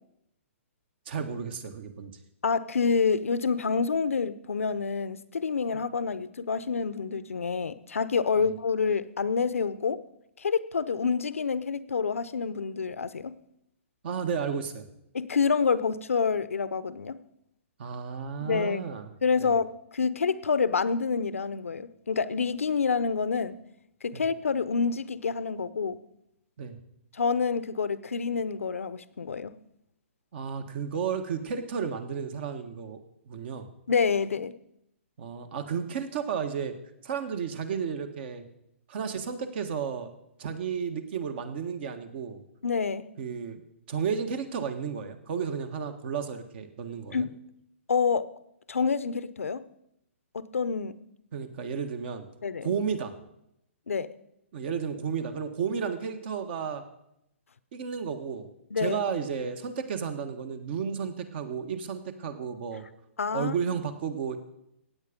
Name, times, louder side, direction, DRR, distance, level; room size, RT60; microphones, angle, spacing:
voice 1, 1.1-2.1 14.0-14.9 17.8-19.1 19.4-19.5 24.1-24.2 26.6-26.8 30.3-33.0 33.3-33.7 35.2-36.8 37.0-38.4 38.9-40.1 40.4-42.4 43.2-43.6 43.9-47.3 51.3-52.2 52.6-53.1 54.5-56.8 57.7-58.5 58.8-62.8 63.3-64.4, right 6 dB, 50° right, 9 dB, 1.5 m, -32 dB
voice 2, 2.4-10.0 10.4-13.3 15.1-17.2 18.4-18.8 19.2-23.6 24.0-26.0 27.1-29.5 33.9-34.5 42.6-43.1 47.1-47.3 47.9-48.3 48.7-49.6 50.3-51.0 52.4-52.7 53.9-54.1 58.7-59.0 63.2-63.5, left 5 dB, 85° left, 16 dB, 0.8 m, -27 dB
16.0 x 8.9 x 5.2 m, 0.80 s
hypercardioid pair, 140°, 7 cm